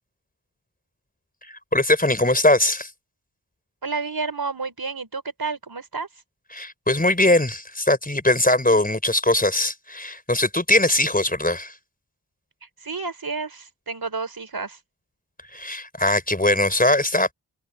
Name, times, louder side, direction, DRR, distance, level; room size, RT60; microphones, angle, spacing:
voice 1, 1.5-2.9 6.5-11.7 15.5-17.3, left 1 dB, 20° left, 4.8 m, -21 dB
voice 2, 3.8-6.1 12.8-14.8, right 4 dB, 60° right, 4.5 m, -30 dB
cardioid pair, 45°, 40 cm